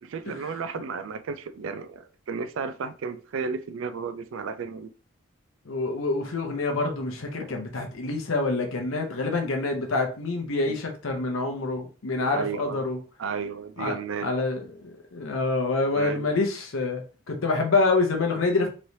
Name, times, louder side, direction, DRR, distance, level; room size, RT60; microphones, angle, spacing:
voice 1, 0.0-4.9 10.7-10.8 12.3-12.8 13.2-14.3 15.9-16.3, right 5 dB, 70° right, 0.3 m, -33 dB
voice 2, 5.7-13.0 13.8-14.0 14.2-14.6 15.1-17.0 17.3-18.7, left 3 dB, 80° left, 0.7 m, -26 dB
3.2 x 3.0 x 2.7 m
head